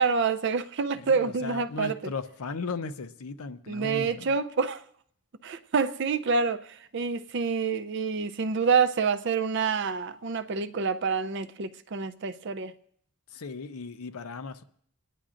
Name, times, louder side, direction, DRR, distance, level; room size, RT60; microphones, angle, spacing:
voice 1, 0.0-2.1 3.7-4.8 5.4-12.7, right 5 dB, 55° right, 0.5 m, -27 dB
voice 2, 1.0-4.3 13.3-14.6, left 4 dB, 85° left, 0.6 m, -36 dB
29.5 x 10.0 x 2.5 m
head